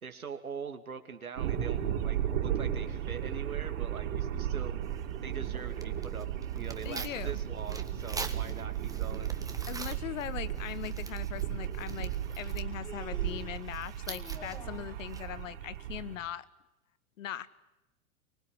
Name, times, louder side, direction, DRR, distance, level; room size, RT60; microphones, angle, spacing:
voice 1, 0.0-4.8 5.2-9.3, right 6 dB, 85° right, 7 dB, 2.9 m, -43 dB
sound 1, 1.4-16.2, right 10 dB, 60° right, 5.0 m, -35 dB
Tearing, 4.8-15.5, right 3 dB, 10° right, 1.5 m, -47 dB
voice 2, 6.8-7.3 9.7-16.4 17.2-17.5, left 11 dB, 65° left, 16 dB, 1.5 m, -40 dB
Human voice, 11.0-11.1 12.4-13.6 14.1-15.1, left 2 dB, 10° left, 2.9 m, -49 dB
24.5 x 20.0 x 9.9 m, 0.95 s
hypercardioid pair, 100°, 41 cm